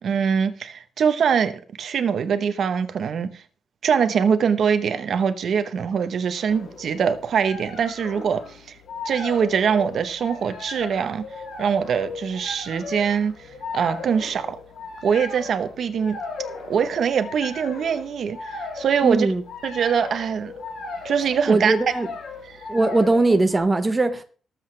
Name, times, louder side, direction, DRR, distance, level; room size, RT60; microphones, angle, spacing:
voice 1, 0.0-3.4 3.8-8.7 9.0-11.2 11.6-13.3 13.7-14.6 15.0-16.2 16.7-19.3 19.6-20.5 21.0-21.7 22.5-22.6, right 7 dB, 50° right, 0.9 m, -23 dB
sound 1, 6.5-23.6, left 3 dB, 75° left, 3.6 m, -37 dB
voice 2, 19.0-19.4 21.5-22.1 22.7-24.2, right 2 dB, 15° right, 0.8 m, -20 dB
18.5 x 7.7 x 3.3 m
cardioid pair, 165°, 0 cm